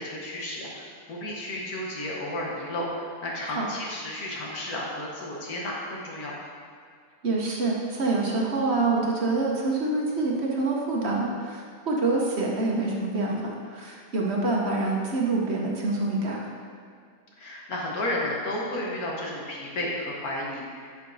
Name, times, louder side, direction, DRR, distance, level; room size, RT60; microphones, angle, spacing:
voice 1, 0.0-6.4 17.4-20.9, left 1 dB, 80° left, -3 dB, 1.7 m, -32 dB
voice 2, 7.2-16.5, right 3 dB, 50° right, -2 dB, 1.1 m, -26 dB
11.0 x 5.6 x 2.7 m, 2.1 s
omnidirectional pair, 1.6 m